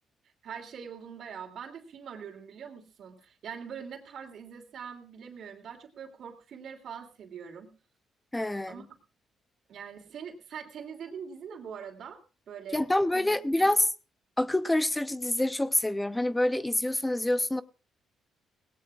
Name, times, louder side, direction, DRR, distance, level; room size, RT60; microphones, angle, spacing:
voice 1, 0.4-7.7 8.7-8.9 9.7-12.2 12.5-12.8 13.1-13.3 13.6-13.7, right 7 dB, 65° right, 2.9 m, -43 dB
voice 2, 8.3-8.8 12.7-13.9 14.4-17.6, left 1 dB, 10° left, 0.7 m, -26 dB
19.0 x 17.5 x 2.4 m
cardioid pair, 90°, 0 cm